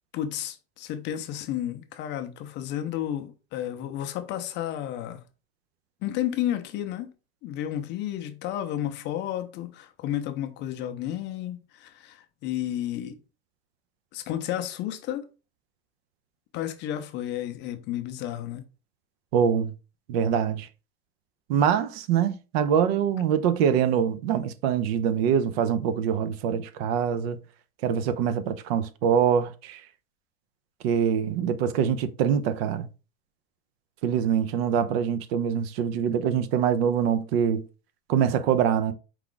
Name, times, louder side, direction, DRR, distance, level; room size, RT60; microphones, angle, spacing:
voice 1, 0.1-5.2 6.0-7.1 7.4-13.2 14.1-15.3 16.5-18.6, left 11 dB, 35° left, 0.5 m, -32 dB
voice 2, 19.3-19.7 20.1-20.7 21.5-27.4 27.8-29.8 30.8-32.9 34.0-37.6 38.1-38.9, right 8 dB, 65° right, 0.6 m, -24 dB
4.7 x 2.3 x 3.8 m
supercardioid pair, 140°, 33 cm